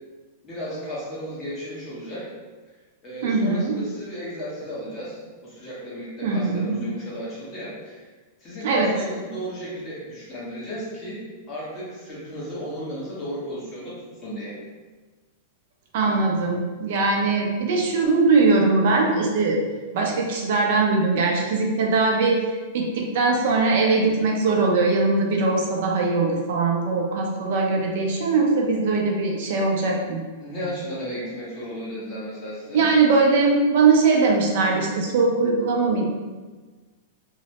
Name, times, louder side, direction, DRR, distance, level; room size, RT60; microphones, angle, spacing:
voice 1, 0.4-2.3 3.0-5.2 5.4-8.0 8.4-11.2 11.5-14.5 30.4-32.9, equal, 25° left, -8 dB, 1.2 m, -34 dB
voice 2, 3.2-3.8 6.2-6.8 8.6-8.9 15.9-19.6 19.9-22.4 22.7-30.2 32.7-36.0, right 3 dB, 65° right, 0 dB, 0.5 m, -21 dB
3.0 x 2.1 x 2.8 m, 1.3 s
supercardioid pair, 140°, 0 cm